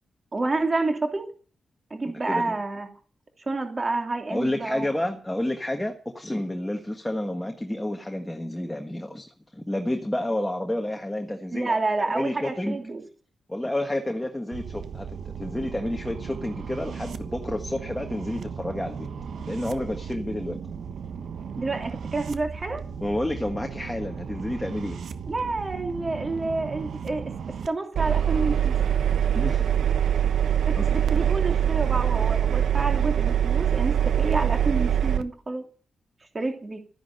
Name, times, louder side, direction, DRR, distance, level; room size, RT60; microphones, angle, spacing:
voice 1, 0.3-1.3 1.9-2.9 3.5-4.9 11.5-13.0 21.6-22.8 25.3-28.7 30.7-35.7 36.3-36.8, right 3 dB, 25° right, 4 dB, 2.9 m, -29 dB
voice 2, 4.3-9.3 9.5-11.8 12.1-12.8 13.5-19.1 19.5-20.6 23.0-25.0 29.3-29.8 30.8-30.9, left 1 dB, 10° left, 3 dB, 1.6 m, -30 dB
sound 1, 14.5-27.7, right 6 dB, 65° right, 1.3 m, -36 dB
Engine, 27.9-35.2, right 9 dB, 85° right, 1.0 m, -23 dB
13.5 x 10.5 x 7.9 m, 0.41 s
wide cardioid pair, 150°, 0 cm